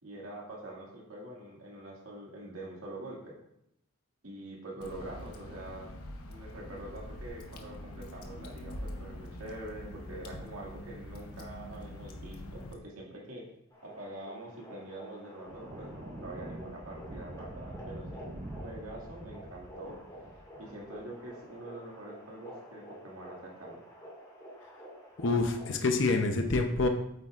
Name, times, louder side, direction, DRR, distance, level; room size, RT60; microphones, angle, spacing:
voice 1, 0.0-3.3 4.2-5.9 6.3-13.5 13.8-20.0 20.6-23.8, right 1 dB, 90° right, -2 dB, 2.1 m, -45 dB
Water / Drip, 4.8-12.7, left 1 dB, 85° left, 1.0 m, -44 dB
sound 1, 13.7-25.9, equal, 15° left, 1.9 m, -50 dB
sound 2, 15.5-21.1, right 1 dB, 30° right, 0.6 m, -45 dB
voice 2, 25.2-26.9, left 3 dB, 55° left, 5 dB, 0.7 m, -27 dB
8.4 x 8.3 x 2.5 m, 0.80 s
head